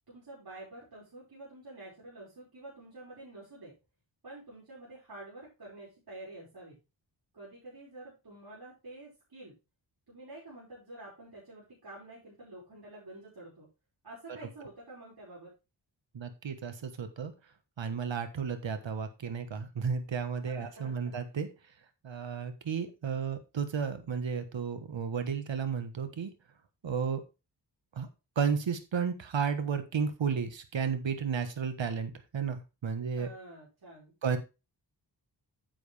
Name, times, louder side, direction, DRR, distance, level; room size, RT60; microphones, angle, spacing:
voice 1, 0.1-3.8 4.2-6.8 7.3-9.6 10.1-13.7 14.0-15.5 20.4-21.1 33.2-34.1, right 2 dB, 55° right, -7 dB, 5.4 m, -48 dB
voice 2, 16.1-17.3 17.8-21.5 22.0-26.3 26.8-27.2 27.9-28.1 28.3-33.3 34.2-34.4, right 6 dB, 80° right, 9 dB, 1.4 m, -33 dB
9.2 x 7.9 x 3.4 m, 0.28 s
wide cardioid pair, 70°, 44 cm